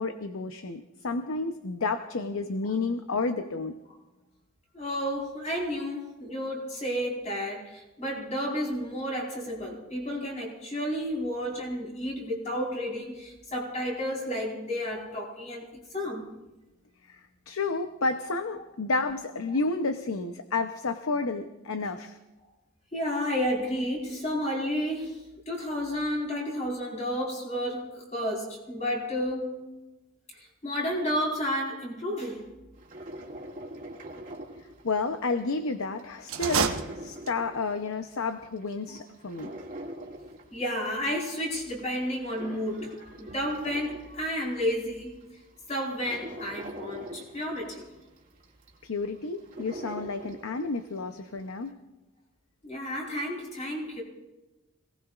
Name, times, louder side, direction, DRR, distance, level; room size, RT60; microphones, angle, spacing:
voice 1, 0.0-3.7 17.0-22.2 34.8-39.5 48.8-51.8, left 3 dB, 75° left, 0.8 m, -31 dB
voice 2, 4.7-16.2 22.9-29.7 30.4-32.5 40.5-45.2 45.7-47.9 52.6-54.0, equal, 30° left, 4.5 m, -31 dB
sound 1, 32.8-35.4 35.7-38.1 38.5-41.1 41.6-44.7 45.2-45.3 45.7-50.9 51.2-51.3, right 1 dB, 40° right, 2.3 m, -43 dB
sound 2, 36.2-37.6, right 6 dB, 75° right, 1.0 m, -29 dB
26.0 x 18.5 x 2.5 m
head